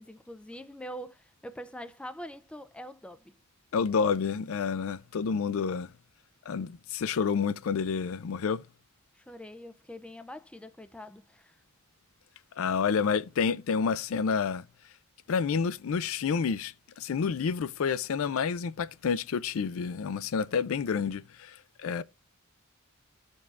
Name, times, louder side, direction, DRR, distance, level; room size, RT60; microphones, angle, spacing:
voice 1, 0.0-3.4 9.1-11.6, equal, 5° left, 0.3 m, -44 dB
voice 2, 3.7-5.9 6.5-8.6 12.6-14.6 15.3-21.6 21.8-22.0, left 6 dB, 70° left, 0.4 m, -29 dB
14.5 x 5.3 x 2.4 m
head